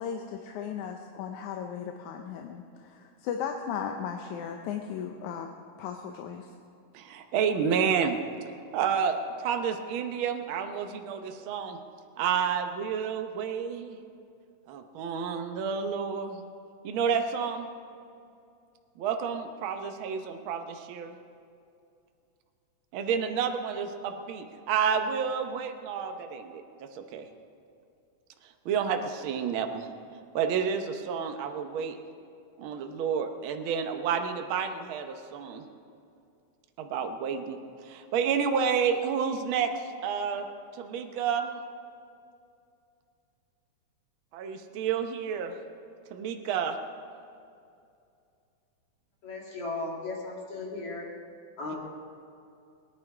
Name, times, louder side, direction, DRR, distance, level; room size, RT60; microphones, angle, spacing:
voice 1, 0.0-5.5 5.8-6.5, left 7 dB, 75° left, 4 dB, 2.1 m, -36 dB
voice 2, 6.9-8.2 8.7-11.8 12.2-14.0 14.7-16.4 16.8-17.7 19.0-21.1 22.9-27.3 28.6-29.9 30.3-32.0 32.6-35.7 36.8-37.6 37.8-39.7 40.0-40.4 40.7-41.6 44.3-45.5 46.1-46.8, right 7 dB, 80° right, 6 dB, 1.1 m, -30 dB
voice 3, 49.2-51.1 51.6-51.8, left 3 dB, 50° left, -2 dB, 3.1 m, -36 dB
20.5 x 10.5 x 4.8 m, 2.5 s
omnidirectional pair, 3.5 m